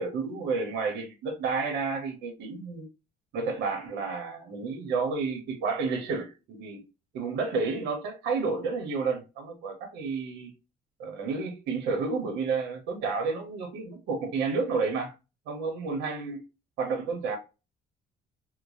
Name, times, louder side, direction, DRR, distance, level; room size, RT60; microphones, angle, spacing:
voice 1, 0.0-2.9 3.3-6.8 7.1-10.5 11.0-15.1 15.5-16.4 16.8-17.4, right 4 dB, 85° right, 1.0 m, -31 dB
3.0 x 2.2 x 2.6 m
cardioid pair, 110°, 17 cm